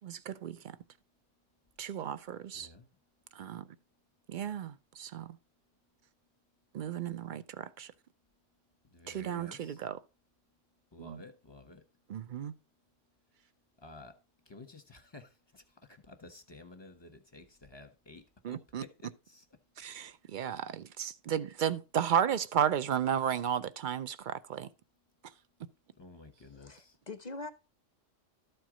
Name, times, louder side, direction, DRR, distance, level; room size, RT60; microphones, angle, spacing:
voice 1, 0.0-0.8 1.8-2.7 3.3-3.7 4.3-5.4 6.7-7.9 9.1-10.0 11.0-11.2 12.1-12.5 18.4-18.8 19.8-24.7, right 9 dB, 55° right, 0.6 m, -34 dB
voice 2, 2.5-2.9 8.8-9.9 10.9-11.9 13.8-19.5 25.9-27.0, left 2 dB, 20° left, 1.2 m, -53 dB
voice 3, 26.5-27.5, left 3 dB, 45° left, 0.6 m, -43 dB
13.0 x 4.6 x 4.9 m
omnidirectional pair, 1.3 m